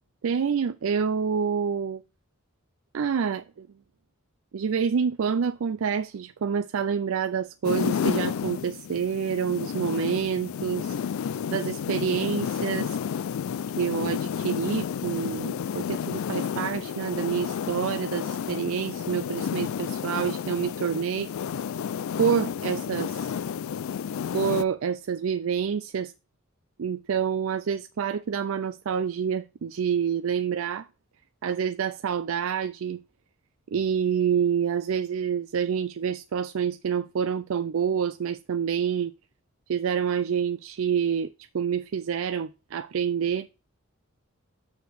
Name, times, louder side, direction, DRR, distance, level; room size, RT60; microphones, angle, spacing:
voice 1, 0.2-2.0 2.9-3.7 4.5-10.9 11.5-13.0 13.8-21.3 22.2-23.3 24.3-26.1 26.8-30.8 31.4-33.0 33.7-39.1 39.7-43.5, right 7 dB, 70° right, 0.4 m, -27 dB
sound 1, 7.6-24.6, left 7 dB, 70° left, 0.3 m, -31 dB
6.6 x 5.1 x 6.0 m
head